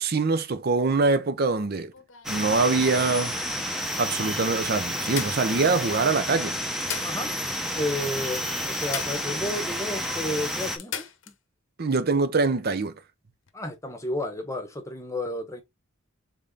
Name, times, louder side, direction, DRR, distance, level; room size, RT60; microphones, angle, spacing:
voice 1, 0.0-1.9 2.3-3.3 4.0-6.6 11.8-12.9, right 3 dB, 45° right, 0.6 m, -24 dB
sound 1, 1.5-3.2 3.8-3.9 4.2-4.3 5.1-6.1 6.6-7.7 7.9-8.0 8.8-9.7 10.0-10.1 10.8-11.4 13.3-13.5, left 9 dB, 60° left, 0.8 m, -38 dB
sound 2, 2.2-10.8, equal, ahead, 0.7 m, -30 dB
voice 2, 7.8-11.0 13.5-15.6, left 1 dB, 15° left, 1.0 m, -31 dB
3.7 x 3.6 x 3.8 m
head